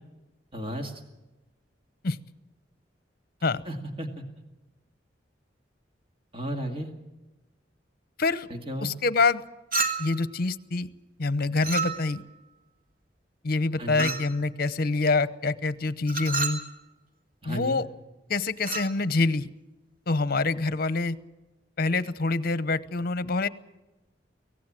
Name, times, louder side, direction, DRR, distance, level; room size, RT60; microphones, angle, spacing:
voice 1, 0.5-1.0 3.7-4.2 6.3-6.9 8.5-8.9 13.8-14.2 17.4-17.8, equal, 30° right, 3 dB, 2.1 m, -34 dB
voice 2, 8.8-9.4 10.0-10.9 11.2-12.2 13.4-16.6 17.4-17.9 18.3-19.5 20.1-21.2 21.8-23.5, left 3 dB, 55° left, 15 dB, 0.9 m, -26 dB
Chink clink, 9.7-10.3 11.6-12.3 14.0-14.4 16.1-16.7 18.6-18.9, right 4 dB, 50° right, 2.1 m, -30 dB
24.0 x 17.5 x 7.6 m, 1.1 s
head